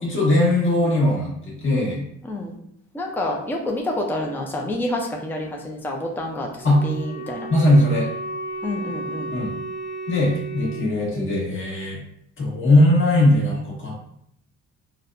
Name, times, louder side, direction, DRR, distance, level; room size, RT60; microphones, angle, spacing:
voice 1, 0.0-2.0 6.6-6.8 7.5-8.1 9.3-9.5 10.1-12.0 12.4-14.0, left 1 dB, 40° left, -4 dB, 1.3 m, -19 dB
voice 2, 2.2-2.5 2.9-7.5 8.6-9.3, left 1 dB, 5° left, 0 dB, 0.5 m, -28 dB
Wind instrument woodwind instrument, 6.5-10.9, right 2 dB, 60° left, 1.1 m, -33 dB
3.9 x 2.2 x 2.5 m, 0.72 s
cardioid pair, 90°, 30 cm